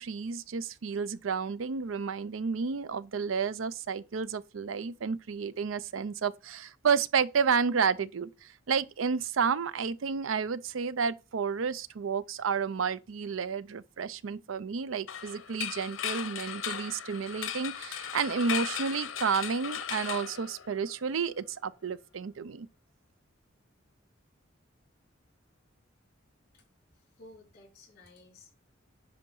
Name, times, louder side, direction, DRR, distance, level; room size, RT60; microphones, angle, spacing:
voice 1, 0.0-22.7, right 6 dB, 90° right, 0.5 m, -31 dB
sound 1, 15.1-21.1, left 9 dB, 85° left, 0.9 m, -37 dB
voice 2, 27.2-28.6, left 2 dB, 55° left, 3.4 m, -54 dB
10.0 x 3.9 x 5.4 m
head